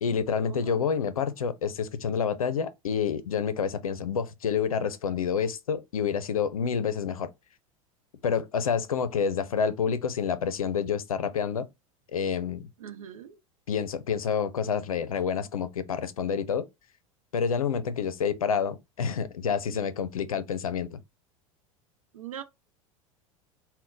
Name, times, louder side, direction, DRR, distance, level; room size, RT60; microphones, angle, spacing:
voice 1, 0.0-7.3 8.2-11.7 12.1-12.7 13.7-16.7 17.3-21.0, left 6 dB, 85° left, 0.5 m, -28 dB
voice 2, 12.8-13.4 22.1-22.4, right 9 dB, 80° right, 0.6 m, -41 dB
3.8 x 2.1 x 3.8 m
hypercardioid pair, 80°, 18 cm